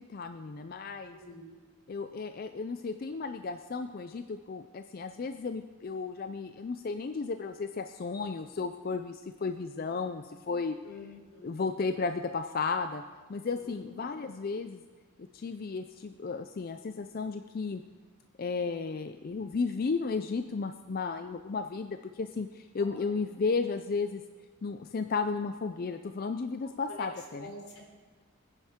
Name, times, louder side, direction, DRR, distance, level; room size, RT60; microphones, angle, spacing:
voice 1, 0.0-1.2 1.9-10.8 11.4-13.0 13.3-14.8 15.3-17.8 18.4-24.2 24.6-27.5, left 4 dB, 40° left, 8 dB, 0.4 m, -34 dB
voice 2, 1.1-1.5 10.8-11.5 13.5-14.0 22.8-23.2 26.9-27.1 27.4-27.8, left 1 dB, 85° left, -1 dB, 3.6 m, -47 dB
20.5 x 10.0 x 3.7 m, 1.4 s
head